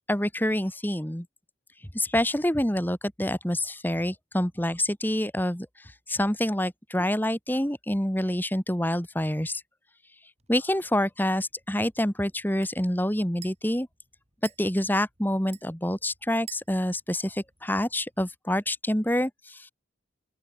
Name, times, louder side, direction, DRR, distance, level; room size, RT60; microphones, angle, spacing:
voice 1, 0.1-1.3 1.9-5.7 6.1-9.6 10.5-13.9 14.6-19.7, left 1 dB, 10° left, 3.1 m, -27 dB
sound 1, 10.4-18.2, right 9 dB, 35° right, 7.9 m, -53 dB
open air
head